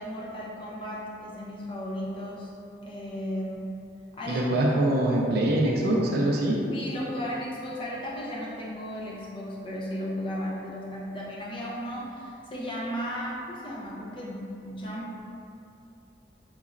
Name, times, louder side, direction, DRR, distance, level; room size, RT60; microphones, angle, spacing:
voice 1, 0.0-2.5 2.8-3.8 4.1-4.6 6.7-15.1, equal, 30° left, -5 dB, 0.4 m, -35 dB
voice 2, 4.3-6.6, right 1 dB, 60° right, -2 dB, 0.4 m, -24 dB
3.8 x 3.0 x 2.4 m, 2.7 s
head